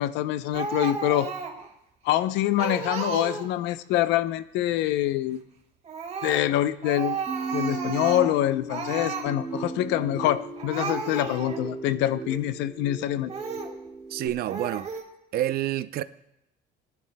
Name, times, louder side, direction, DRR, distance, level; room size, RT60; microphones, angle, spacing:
voice 1, 0.0-1.3 2.0-5.4 6.2-7.2 7.5-13.3, left 13 dB, 90° left, 0.6 m, -25 dB
Speech, 0.5-1.7 2.1-2.2 2.6-3.7 5.8-6.5 6.8-8.4 8.7-9.3 10.2-10.3 10.6-11.6 12.2-12.3 13.3-13.8 14.4-15.0, right 5 dB, 40° right, 2.0 m, -33 dB
sound 1, 7.3-14.3, right 2 dB, 10° right, 2.1 m, -36 dB
voice 2, 14.1-14.9 15.3-16.0, right 12 dB, 60° right, 0.6 m, -28 dB
23.5 x 11.0 x 2.2 m
cardioid pair, 120°, 18 cm